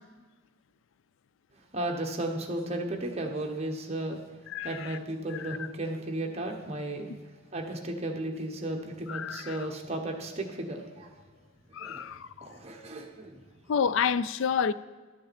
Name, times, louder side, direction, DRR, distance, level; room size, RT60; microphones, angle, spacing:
voice 1, 1.7-4.2 4.6-7.1 7.5-11.1 11.8-12.1 12.4-13.4, right 1 dB, 30° right, 1.1 m, -34 dB
voice 2, 4.5-5.0 5.3-5.6 9.1-9.6 11.7-12.5 13.7-14.7, left 7 dB, 60° left, 0.3 m, -29 dB
12.5 x 7.5 x 4.2 m
head